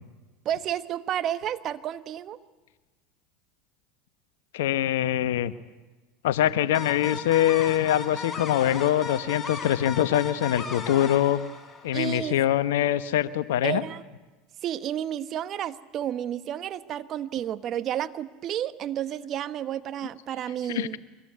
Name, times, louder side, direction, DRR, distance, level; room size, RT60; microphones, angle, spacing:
voice 1, 0.4-2.4 11.9-12.3 13.6-14.0 14.6-21.0, right 11 dB, 45° right, 12 dB, 1.1 m, -31 dB
voice 2, 4.5-5.5 6.2-11.4 11.8-13.8 20.7-21.0, left 12 dB, 75° left, 13 dB, 1.1 m, -24 dB
sound 1, 6.7-12.2, left 4 dB, 20° left, 4.8 m, -36 dB
24.5 x 22.0 x 9.5 m, 1.2 s
hypercardioid pair, 80°, 0 cm